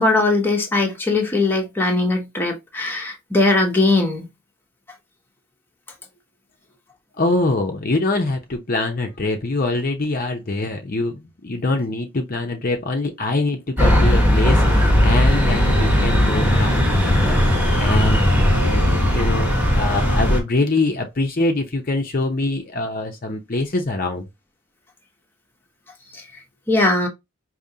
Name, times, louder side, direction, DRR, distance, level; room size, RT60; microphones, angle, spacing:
voice 1, 0.0-4.3 26.1-26.2 26.7-27.1, left 2 dB, 10° left, 0.9 m, -20 dB
voice 2, 7.2-17.4 17.8-18.3 18.7-24.2, left 2 dB, 40° left, 0.7 m, -24 dB
sound 1, 13.8-20.4, equal, 5° right, 1.2 m, -17 dB
sound 2, 14.5-20.4, equal, 90° right, 1.0 m, -30 dB
5.2 x 2.8 x 2.8 m
head